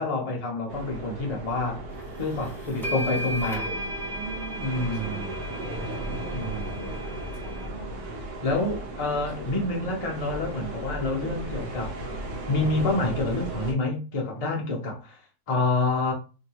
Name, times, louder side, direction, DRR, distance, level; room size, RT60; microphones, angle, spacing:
voice 1, 0.0-1.8 2.2-3.7 4.6-5.3 6.3-7.0 8.4-11.9 12.5-15.2 15.5-16.1, left 2 dB, 65° left, 0.3 m, -28 dB
sound 1, 0.7-13.7, right 1 dB, 80° right, 1.4 m, -36 dB
sound 2, 2.2-2.3 2.8-7.7, equal, ahead, 0.7 m, -35 dB
voice 2, 3.7-6.5 7.4-8.1 9.4-9.5 11.2-11.4, right 3 dB, 65° right, 1.1 m, -42 dB
3.1 x 2.8 x 2.8 m
omnidirectional pair, 1.7 m